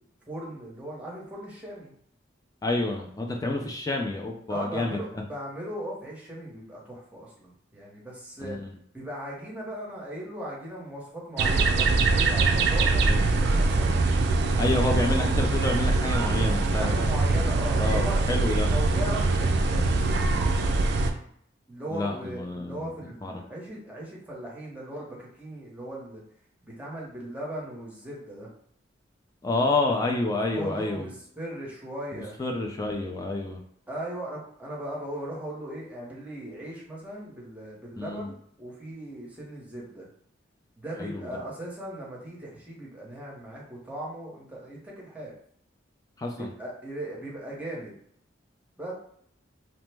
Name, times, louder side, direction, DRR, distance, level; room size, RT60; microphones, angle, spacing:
voice 1, 0.3-1.9 4.5-8.6 8.9-14.0 16.8-18.2 18.7-20.3 21.7-26.2 26.6-28.5 30.5-32.4 33.9-40.1 40.8-45.3 46.3-47.9 48.8-48.9, right 1 dB, 5° right, -4 dB, 0.7 m, -38 dB
voice 2, 2.6-5.0 8.4-8.7 13.0-13.2 14.6-17.0 17.8-18.7 21.9-22.9 23.2-23.3 29.4-31.1 32.1-33.6 38.0-38.3 41.0-41.3 46.2-46.5, left 2 dB, 20° left, 1 dB, 0.3 m, -29 dB
sound 1, 11.4-21.1, right 3 dB, 60° right, 0.3 m, -23 dB
3.0 x 2.0 x 3.3 m, 0.67 s
head